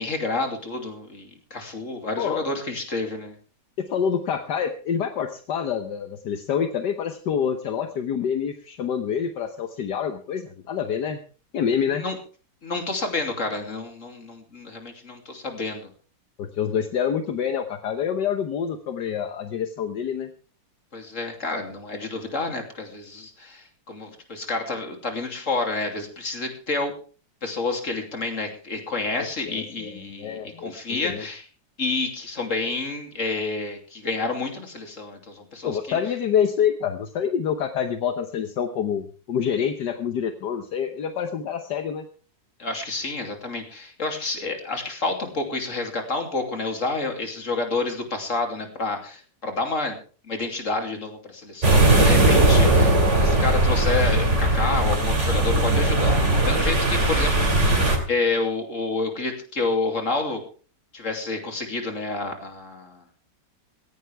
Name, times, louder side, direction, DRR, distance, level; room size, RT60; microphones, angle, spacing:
voice 1, 0.0-3.4 11.9-12.2 12.6-15.9 20.9-26.9 27.4-31.5 31.8-36.0 42.6-50.0 50.2-57.4 58.1-60.4 60.9-63.0, left 3 dB, 45° left, 4 dB, 3.2 m, -29 dB
voice 2, 3.8-11.2 11.5-12.0 16.4-20.3 29.5-31.2 35.6-42.0, left 8 dB, 75° left, 8 dB, 1.6 m, -27 dB
sound 1, 51.6-58.0, right 2 dB, 40° right, 3.1 m, -19 dB
17.0 x 16.0 x 3.5 m, 0.38 s
omnidirectional pair, 1.9 m